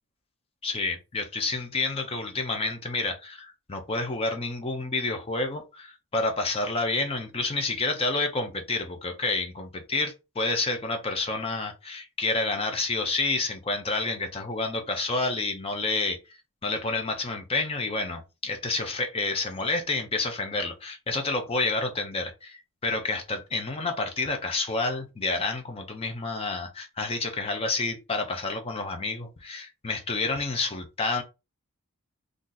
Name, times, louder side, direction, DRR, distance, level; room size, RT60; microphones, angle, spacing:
voice 1, 0.6-16.2 16.6-31.2, left 3 dB, 25° left, 0.5 m, -29 dB
2.7 x 2.4 x 3.8 m
head